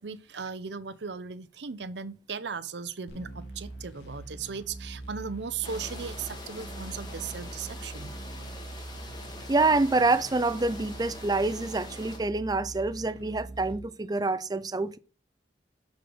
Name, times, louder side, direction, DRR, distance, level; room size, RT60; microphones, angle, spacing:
voice 1, 0.0-8.1, right 5 dB, 80° right, 0.7 m, -37 dB
sound 1, 3.1-13.7, right 2 dB, 85° left, 2.0 m, -43 dB
sound 2, 5.6-12.2, left 2 dB, 25° left, 2.0 m, -44 dB
voice 2, 9.5-15.0, right 3 dB, 20° right, 0.5 m, -26 dB
6.6 x 4.9 x 6.2 m
head